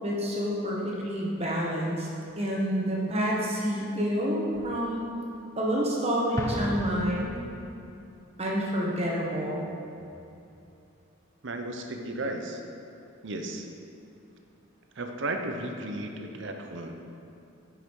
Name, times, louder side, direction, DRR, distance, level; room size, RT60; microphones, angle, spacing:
voice 1, 0.0-2.1 2.4-5.1 5.6-7.3 8.4-9.6, equal, 30° right, -4 dB, 1.5 m, -28 dB
Explosion, 6.4-8.0, left 1 dB, 15° left, 0.6 m, -35 dB
voice 2, 11.4-12.6 13.2-13.6 15.0-16.9, right 2 dB, 55° right, 4 dB, 0.8 m, -34 dB
9.9 x 5.8 x 4.8 m, 2.7 s
head